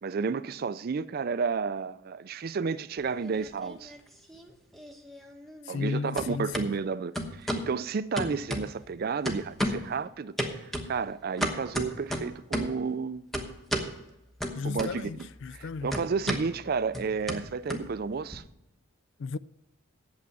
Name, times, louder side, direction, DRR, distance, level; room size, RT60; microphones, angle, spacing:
voice 1, 0.0-3.9 5.7-13.2 14.6-15.1 15.5-18.4, right 5 dB, 45° right, 0.4 m, -32 dB
sound 1, 3.0-4.0 4.3-5.9 6.2-6.7 7.2-7.7 8.2-9.0 9.3-9.9 10.4-12.8 13.3-13.9 14.4-15.2 15.5-18.4, equal, ahead, 1.0 m, -34 dB
voice 2, 5.6-6.7 14.5-16.0 19.2-19.4, left 4 dB, 60° left, 0.4 m, -34 dB
8.5 x 7.5 x 8.2 m
head